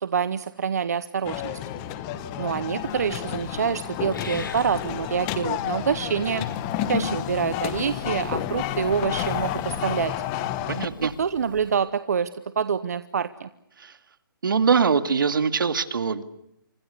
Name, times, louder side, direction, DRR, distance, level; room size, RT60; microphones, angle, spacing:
voice 1, 0.0-1.6 2.4-6.4 6.9-10.1 11.0-12.3 12.6-13.5, right 7 dB, 45° right, 14 dB, 0.9 m, -26 dB
sound 1, 1.2-10.9, left 11 dB, 15° left, 0.9 m, -30 dB
Purr / Meow, 2.8-11.7, left 4 dB, 65° left, 3.5 m, -43 dB
voice 2, 10.7-11.1 13.8-14.0 14.4-16.2, right 6 dB, 65° right, 11 dB, 2.1 m, -23 dB
26.5 x 25.5 x 6.7 m, 0.78 s
hypercardioid pair, 175°, 12 cm